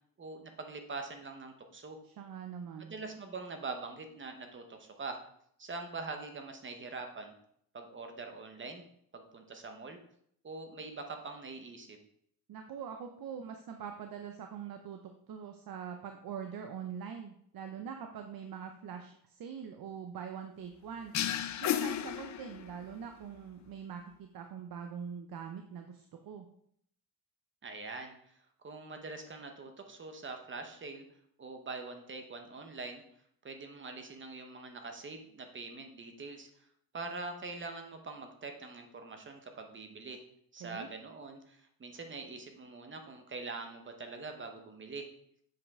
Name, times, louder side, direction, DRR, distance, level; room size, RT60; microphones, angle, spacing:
voice 1, 0.2-2.0 2.8-5.2 5.6-7.3 7.7-8.8 9.1-10.0 10.4-12.0 27.6-28.1 28.6-31.0 31.4-33.0 33.4-36.5 36.9-40.2 40.5-45.1, right 3 dB, 30° right, 5 dB, 0.9 m, -43 dB
voice 2, 2.0-2.9 12.5-21.1 21.6-26.5 40.6-40.9, right 7 dB, 65° right, 5 dB, 0.7 m, -43 dB
sound 1, 21.1-22.9, left 10 dB, 50° left, 0.4 m, -33 dB
7.6 x 5.1 x 3.6 m, 0.68 s
wide cardioid pair, 145°, 37 cm